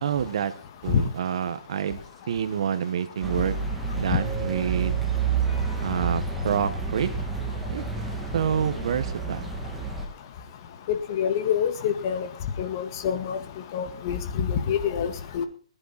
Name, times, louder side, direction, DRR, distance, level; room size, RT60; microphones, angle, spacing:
voice 1, 0.0-0.5 0.8-3.6 3.9-5.0 5.8-7.1 7.7-7.8 8.3-9.5, right 8 dB, 55° right, 12 dB, 1.5 m, -27 dB
sound 1, 3.2-10.1, right 5 dB, 5° right, 2.6 m, -29 dB
voice 2, 10.9-12.3 12.6-15.5, left 8 dB, 35° left, 9 dB, 1.9 m, -26 dB
20.5 x 10.0 x 4.3 m, 0.39 s
hypercardioid pair, 165°, 4 cm